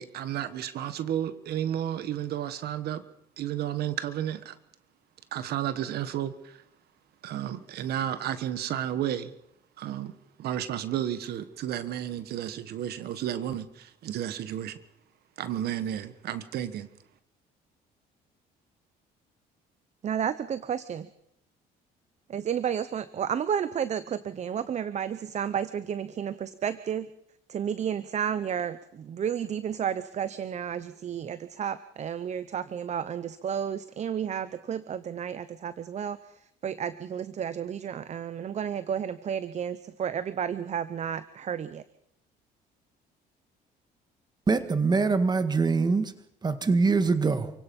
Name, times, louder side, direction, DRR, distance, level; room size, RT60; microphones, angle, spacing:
voice 1, 0.0-3.0 3.4-4.6 5.3-6.6 7.2-9.3 9.8-10.1 10.4-14.8 15.4-16.9, right 11 dB, 70° right, 12 dB, 1.4 m, -32 dB
voice 2, 20.0-21.1 22.3-27.1 27.5-36.2 36.6-41.8, right 8 dB, 45° right, 14 dB, 0.9 m, -32 dB
voice 3, 44.5-46.1 46.4-47.5, right 4 dB, 25° right, 10 dB, 1.9 m, -23 dB
28.5 x 17.0 x 5.4 m, 0.76 s
cardioid pair, 110°, 17 cm